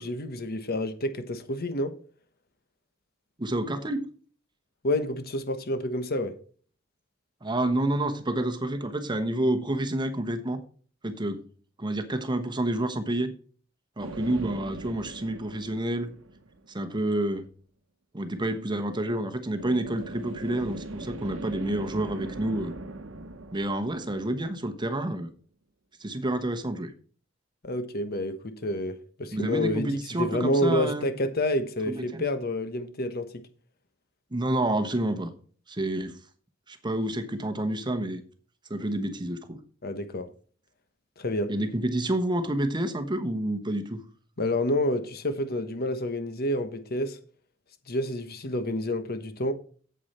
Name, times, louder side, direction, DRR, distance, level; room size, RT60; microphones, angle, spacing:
voice 1, 0.0-2.0 4.8-6.3 27.6-33.3 39.8-40.3 41.2-41.5 44.4-47.2 47.9-49.5, left 1 dB, 50° left, 1.2 m, -29 dB
voice 2, 3.4-4.1 7.4-10.6 11.0-11.5 11.8-13.3 14.0-16.1 16.7-17.5 18.1-22.7 23.5-25.3 26.0-26.9 29.3-31.1 31.9-32.2 34.3-35.3 35.7-36.2 36.7-38.2 38.7-39.6 41.5-44.0, right 1 dB, 25° right, 1.0 m, -29 dB
sound 1, 14.0-16.8 19.6-25.0, right 2 dB, 70° right, 1.0 m, -40 dB
8.4 x 7.9 x 4.3 m
head